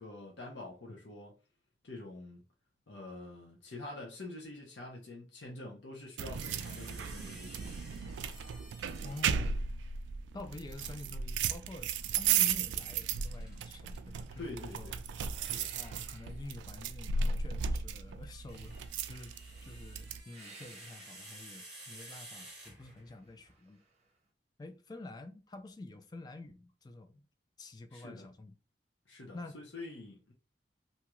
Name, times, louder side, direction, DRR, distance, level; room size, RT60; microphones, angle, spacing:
voice 1, 0.0-1.3 1.8-2.4 2.9-7.7 14.4-15.0 15.4-15.7 27.9-28.3 29.1-30.3, left 2 dB, 80° left, 0.8 m, -46 dB
sound 1, 6.2-20.2, right 6 dB, 85° right, 0.3 m, -35 dB
sound 2, 6.3-9.7 12.5-14.0 15.8-16.0 18.1-23.2, right 1 dB, 5° right, 1.1 m, -53 dB
voice 2, 9.0-9.6 10.3-11.9 12.2-14.9 15.7-18.8 19.1-19.3 19.6-23.8 24.6-27.3 27.6-28.5 29.3-29.6, left 2 dB, 25° left, 0.4 m, -48 dB
sound 3, 11.9-13.1 13.4-17.1 18.7-19.8 20.2-21.6 23.0-24.2, right 3 dB, 40° right, 0.7 m, -59 dB
2.7 x 2.3 x 3.0 m
head